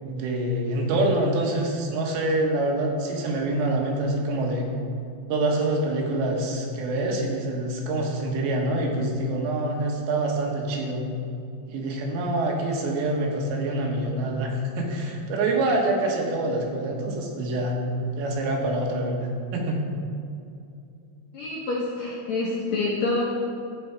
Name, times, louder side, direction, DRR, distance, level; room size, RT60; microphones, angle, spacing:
voice 1, 0.0-4.7 5.3-11.1 11.7-19.8, right 2 dB, 80° right, 0 dB, 3.6 m, -26 dB
voice 2, 21.3-23.2, left 3 dB, 65° left, -6 dB, 1.8 m, -27 dB
12.5 x 8.8 x 4.8 m, 2.5 s
omnidirectional pair, 5.0 m